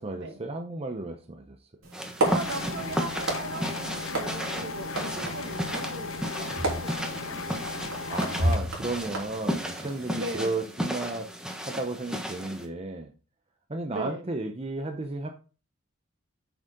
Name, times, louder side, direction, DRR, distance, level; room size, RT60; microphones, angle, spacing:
voice 1, 0.0-1.6 8.0-11.3 11.6-13.1 13.7-15.3, right 2 dB, 30° right, 5 dB, 0.7 m, -33 dB
sound 1, 1.8-10.4, right 1 dB, 85° right, 3.4 m, -33 dB
sound 2, 1.9-12.7, equal, 5° right, 1.2 m, -34 dB
sound 3, 2.2-8.6, left 4 dB, 70° left, 0.6 m, -36 dB
voice 2, 2.2-7.4 10.1-10.7 13.9-14.3, right 2 dB, 60° right, 6 dB, 1.5 m, -38 dB
8.2 x 6.5 x 3.7 m, 0.35 s
head